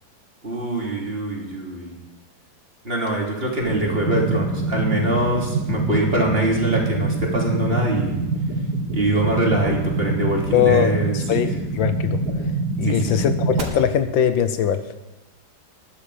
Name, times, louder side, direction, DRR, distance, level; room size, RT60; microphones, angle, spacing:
voice 1, 0.4-1.9 2.8-8.2 8.9-11.4 12.8-13.2, right 1 dB, 30° right, -2 dB, 3.5 m, -23 dB
sound 1, 3.6-13.6, right 3 dB, 55° right, 2.4 m, -25 dB
voice 2, 10.5-12.2 12.8-14.8, left 9 dB, 75° left, 10 dB, 1.5 m, -21 dB
20.0 x 11.5 x 5.1 m, 1.1 s
omnidirectional pair, 2.2 m